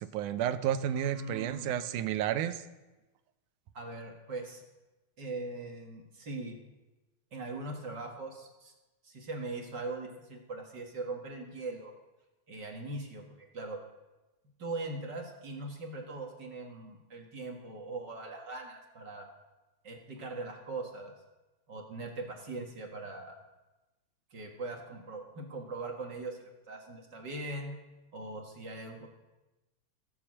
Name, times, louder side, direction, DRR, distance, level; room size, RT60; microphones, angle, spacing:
voice 1, 0.0-2.6, right 10 dB, 85° right, 12 dB, 2.2 m, -31 dB
voice 2, 0.9-1.7 3.7-4.6 5.2-6.6 7.3-8.7 9.0-11.9 12.5-13.8 14.6-19.3 19.8-21.1 21.7-23.4 24.3-27.8 28.1-29.1, right 2 dB, 45° right, 2 dB, 1.7 m, -41 dB
16.5 x 7.2 x 7.4 m, 1.1 s
omnidirectional pair, 3.5 m